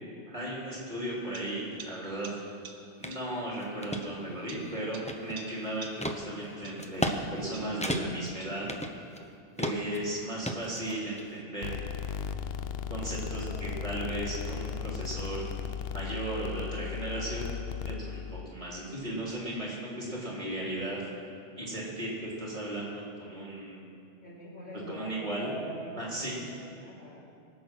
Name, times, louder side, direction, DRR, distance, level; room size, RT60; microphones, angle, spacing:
voice 1, 0.3-2.4 3.0-8.7 9.6-11.8 12.9-15.5 15.9-17.5 17.9-21.0 21.6-23.9 24.9-25.6 26.0-26.4, right 1 dB, 35° right, -5 dB, 3.6 m, -36 dB
sound 1, 1.3-3.4 4.0-6.3 6.6-8.7, right 4 dB, 60° right, 1.3 m, -50 dB
sound 2, 3.0-3.2 3.6-4.0 4.6-5.5 6.0-6.2 6.8-7.2 7.4-7.5 7.8-8.3 8.7-9.3 9.6-10.0 10.4-11.2, equal, 5° left, 0.7 m, -33 dB
sound 3, 11.6-18.5, left 8 dB, 60° left, 0.7 m, -36 dB
voice 2, 13.4-13.8 24.2-27.3, right 1 dB, 80° left, -8 dB, 4.9 m, -44 dB
23.5 x 8.1 x 6.2 m, 2.4 s
omnidirectional pair, 1.3 m